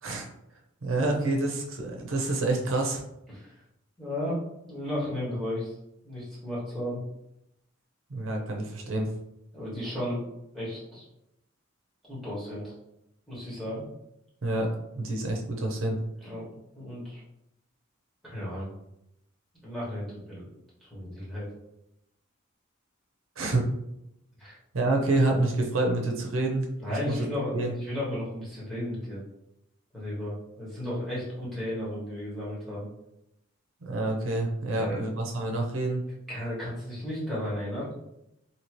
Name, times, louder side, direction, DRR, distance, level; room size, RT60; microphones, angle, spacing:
voice 1, 0.8-3.0 8.1-9.1 14.4-14.7 14.9-16.0 23.4-23.7 24.7-27.2 27.5-27.7 33.8-36.0, right 2 dB, 75° right, 1 dB, 0.6 m, -27 dB
voice 2, 4.0-5.7 6.0-7.0 9.5-10.2 10.5-11.0 12.1-12.7 13.3-13.8 16.2-16.5 16.7-17.2 18.2-18.7 19.6-20.5 20.9-21.5 24.4-24.6 26.8-29.2 29.9-32.9 34.7-35.1 36.3-37.9, left 1 dB, ahead, -9 dB, 1.5 m, -34 dB
2.9 x 2.8 x 3.0 m, 0.83 s
head